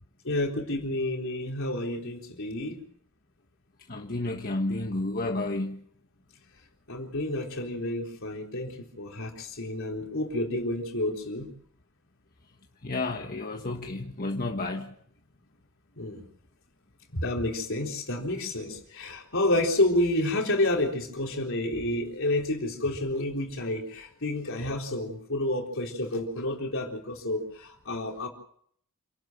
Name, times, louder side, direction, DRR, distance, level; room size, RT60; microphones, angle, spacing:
voice 1, 0.2-2.8 6.9-11.5 16.0-16.2 17.1-28.3, left 1 dB, 65° left, 4.0 m, -29 dB
voice 2, 3.9-5.8 12.8-14.9, left 2 dB, 40° left, 1.4 m, -31 dB
28.0 x 12.0 x 7.7 m
head